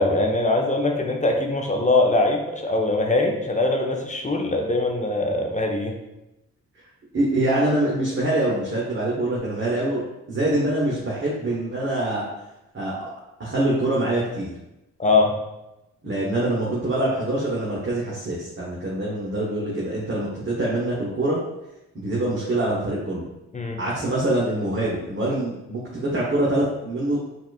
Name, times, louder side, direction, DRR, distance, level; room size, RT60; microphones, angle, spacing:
voice 1, 0.0-5.9 15.0-15.4 23.5-23.8, left 2 dB, 20° left, 1 dB, 0.6 m, -22 dB
voice 2, 7.1-12.2 12.7-13.1 13.4-14.5 16.0-21.4 21.9-23.3 23.8-25.8 26.1-27.3, right 1 dB, 35° right, -6 dB, 1.0 m, -24 dB
4.1 x 2.4 x 2.4 m, 0.94 s
hypercardioid pair, 40°, 35 cm